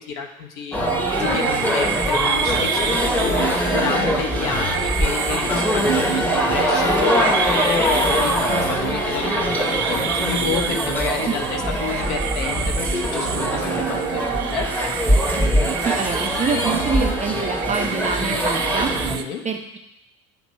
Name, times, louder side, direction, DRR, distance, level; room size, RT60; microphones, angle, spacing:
voice 1, 0.0-13.7 14.1-14.7 19.1-19.4, left 5 dB, 60° left, 2 dB, 1.1 m, -30 dB
sound 1, 0.7-19.2, equal, 5° left, 0.9 m, -22 dB
sound 2, 0.8-19.2, right 10 dB, 70° right, 0.6 m, -28 dB
voice 2, 15.8-19.2 19.4-19.8, right 5 dB, 15° right, 3 dB, 0.5 m, -26 dB
8.1 x 2.9 x 5.4 m, 0.86 s
figure-of-eight pair, 65°, 45 cm